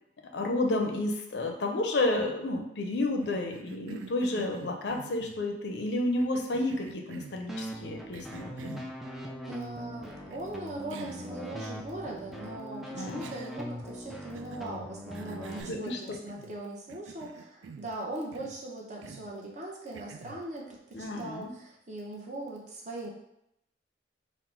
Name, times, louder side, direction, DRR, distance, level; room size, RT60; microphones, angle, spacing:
voice 1, 0.3-8.9 12.9-13.4 15.6-16.2 20.9-21.5, left 2 dB, 65° left, 3 dB, 0.5 m, -31 dB
Cough, 3.2-5.4 6.2-7.5 8.1-8.9 10.3-10.4 10.9-11.3 11.6-11.7 13.2-13.8 14.3-14.7 15.1-16.6 16.9-18.0 18.3-18.6 19.0-19.3 19.9-20.4, right 5 dB, 85° right, 0.3 m, -47 dB
sound 1, 7.5-15.6, equal, ahead, 0.3 m, -41 dB
voice 2, 9.5-23.1, right 2 dB, 40° right, -2 dB, 0.7 m, -40 dB
3.9 x 2.1 x 4.4 m, 0.80 s
head